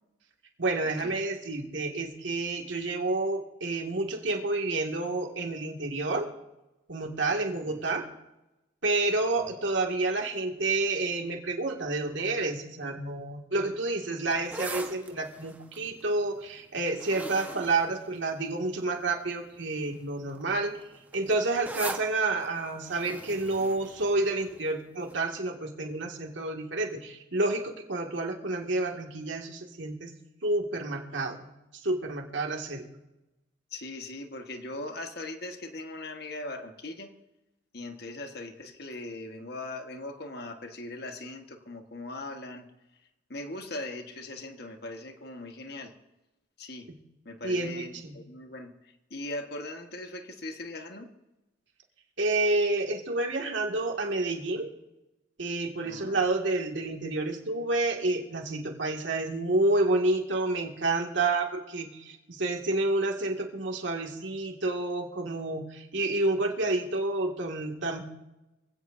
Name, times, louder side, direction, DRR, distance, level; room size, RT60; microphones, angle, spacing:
voice 1, 0.6-6.3 6.9-8.0 8.8-20.7 21.1-30.1 30.4-31.4 31.8-32.8 47.4-48.2 52.2-54.7 55.4-68.0, right 2 dB, 85° right, 1 dB, 2.3 m, -29 dB
sound 1, 14.3-18.8 19.5-19.8 20.1-24.7 25.1-25.2, right 2 dB, 10° right, 1.3 m, -41 dB
voice 2, 33.7-37.1 37.7-42.7 43.3-45.9 46.6-46.9 47.2-51.1 55.8-56.2, left 2 dB, 55° left, 5 dB, 1.5 m, -40 dB
25.0 x 16.5 x 2.7 m, 0.97 s
head